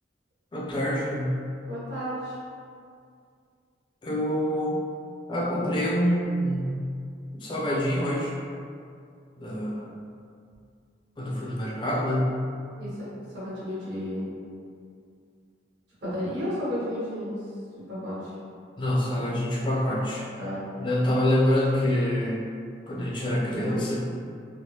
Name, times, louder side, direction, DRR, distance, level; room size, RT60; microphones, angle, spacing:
voice 1, 0.5-1.4 4.0-4.8 5.3-6.8 7.3-8.3 9.4-9.9 11.2-12.4 18.8-20.2 20.8-22.4 22.9-24.0, equal, 25° left, -5 dB, 0.4 m, -26 dB
voice 2, 1.7-2.4 12.8-14.3 16.0-17.4 17.9-18.3 20.4-20.6, equal, 70° right, -11 dB, 1.4 m, -32 dB
3.3 x 2.0 x 2.8 m, 2.3 s
head